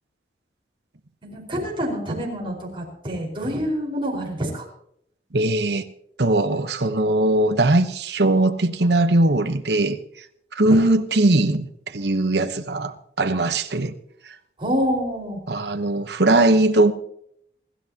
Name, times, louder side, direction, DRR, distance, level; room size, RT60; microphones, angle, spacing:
voice 1, 1.2-4.7 10.6-10.8 14.6-15.4, equal, 30° right, 4.8 m, -27 dB
voice 2, 5.3-5.8 6.2-10.0 10.5-13.9 14.3-14.4 15.5-16.9, right 2 dB, 75° right, 1.0 m, -20 dB
27.5 x 13.0 x 2.9 m
head